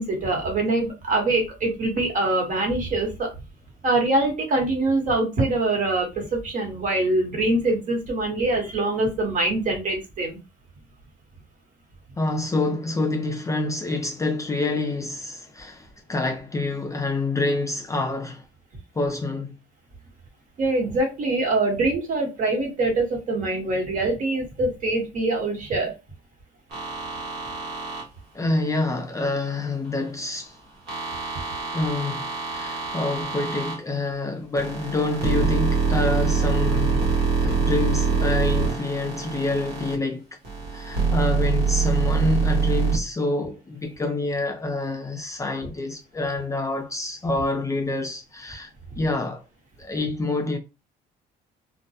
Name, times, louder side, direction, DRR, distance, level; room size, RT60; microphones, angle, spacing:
voice 1, 0.0-3.3 3.8-10.4 20.6-25.9, right 2 dB, 50° right, 1.1 m, -24 dB
voice 2, 12.2-18.5 19.0-19.6 28.3-30.6 31.7-37.1 37.4-40.2 40.7-49.4 49.8-50.6, left 2 dB, 20° left, 0.3 m, -27 dB
sound 1, 26.7-28.0 30.9-33.8 34.6-39.9 40.4-43.0, right 5 dB, 80° right, 1.0 m, -24 dB
2.2 x 2.0 x 2.7 m
cardioid pair, 110°, 17 cm